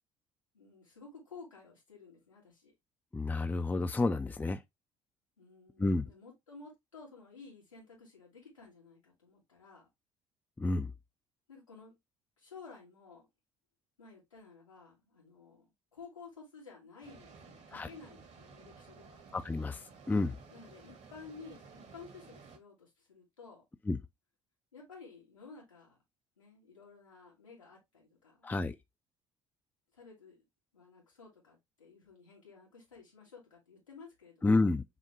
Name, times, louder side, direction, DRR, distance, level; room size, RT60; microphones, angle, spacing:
voice 1, 0.5-2.7 5.4-9.8 11.5-11.9 12.4-13.3 14.0-19.2 20.5-23.6 24.7-26.0 26.4-28.5 29.9-30.4 30.7-34.7, left 4 dB, 85° left, 1.9 m, -53 dB
voice 2, 3.1-4.6 5.8-6.0 10.6-10.9 17.7-17.9 19.3-20.4 23.9-24.0 28.4-28.8 34.4-34.8, left 3 dB, 10° left, 0.4 m, -30 dB
sound 1, 17.0-22.6, right 5 dB, 45° right, 1.0 m, -55 dB
5.9 x 2.2 x 3.0 m
figure-of-eight pair, 50°, 16 cm